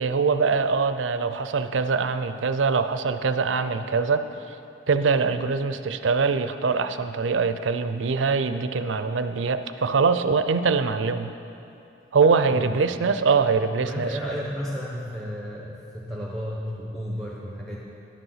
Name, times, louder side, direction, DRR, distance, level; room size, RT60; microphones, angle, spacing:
voice 1, 0.0-4.2 4.9-11.3 12.1-14.1, right 5 dB, 85° right, 10 dB, 0.5 m, -23 dB
voice 2, 13.8-17.8, equal, ahead, -4 dB, 0.9 m, -32 dB
11.0 x 8.3 x 5.8 m, 2.7 s
head